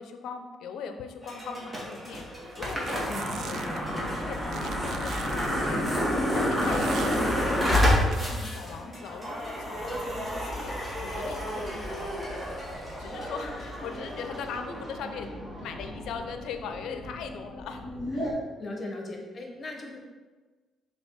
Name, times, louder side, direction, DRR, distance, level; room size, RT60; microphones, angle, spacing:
voice 1, 0.0-3.9 4.2-6.0 6.3-15.3 15.6-18.4, left 5 dB, 80° left, 7 dB, 0.6 m, -40 dB
sound 1, 1.2-18.3, equal, 15° right, 2.0 m, -30 dB
sound 2, 2.6-3.8 4.5-5.5 6.6-7.2 8.1-8.2, right 8 dB, 70° right, 0.3 m, -41 dB
voice 2, 3.1-3.8 18.6-20.0, left 2 dB, 40° left, 1 dB, 1.3 m, -38 dB
6.3 x 3.8 x 4.8 m, 1.3 s
cardioid pair, 90°, 0 cm